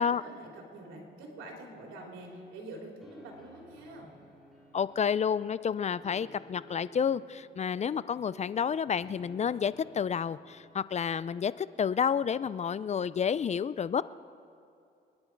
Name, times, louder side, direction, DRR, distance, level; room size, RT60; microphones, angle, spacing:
voice 1, 0.0-4.1, right 2 dB, 90° right, 0 dB, 3.2 m, -46 dB
sound 1, 1.2-10.8, left 1 dB, ahead, 5.0 m, -56 dB
voice 2, 4.7-14.0, left 7 dB, 35° left, 17 dB, 0.4 m, -30 dB
26.5 x 10.5 x 4.6 m, 2.6 s
cardioid pair, 90°, 20 cm